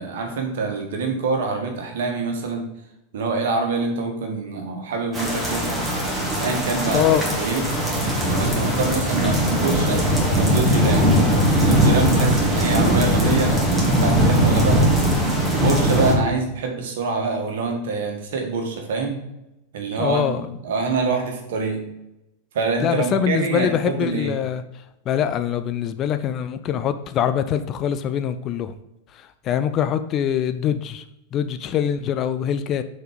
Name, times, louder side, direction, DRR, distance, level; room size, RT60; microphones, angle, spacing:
voice 1, 0.0-2.7 3.1-5.8 6.4-7.7 8.3-10.0 10.3-11.1 11.6-14.9 15.5-19.2 19.7-21.8 22.5-24.4, right 4 dB, 55° right, 1.5 m, -25 dB
sound 1, 5.1-16.1, equal, 5° right, 1.9 m, -20 dB
voice 2, 20.0-20.4 22.8-24.6 25.1-28.7 29.4-31.0 31.3-32.8, left 9 dB, 30° left, 0.4 m, -23 dB
6.5 x 4.3 x 5.0 m
figure-of-eight pair, 90°, 0 cm